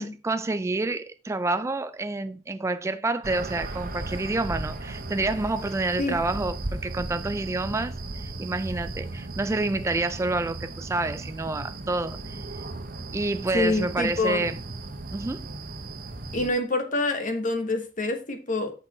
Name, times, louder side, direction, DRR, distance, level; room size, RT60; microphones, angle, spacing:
voice 1, 0.0-12.4 13.1-14.6 15.1-15.5, right 2 dB, 15° right, 0.3 m, -28 dB
sound 1, 3.2-16.5, right 2 dB, 50° right, 1.0 m, -36 dB
voice 2, 13.5-14.5 16.3-18.7, left 2 dB, 45° left, 1.5 m, -26 dB
6.7 x 6.1 x 4.3 m
head